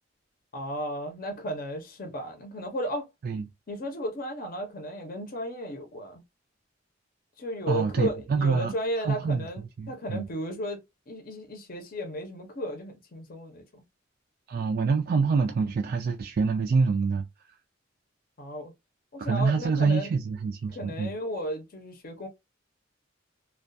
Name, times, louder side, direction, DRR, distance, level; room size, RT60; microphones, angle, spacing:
voice 1, 0.5-3.1 3.7-6.2 7.4-10.8 11.1-13.8 18.4-18.7 19.1-20.1 20.7-22.3, equal, 50° left, 0.7 m, -34 dB
voice 2, 7.7-8.7 9.0-9.5 9.8-10.2 14.5-17.2 19.2-21.1, right 4 dB, 50° right, 0.3 m, -26 dB
2.3 x 2.2 x 2.5 m
head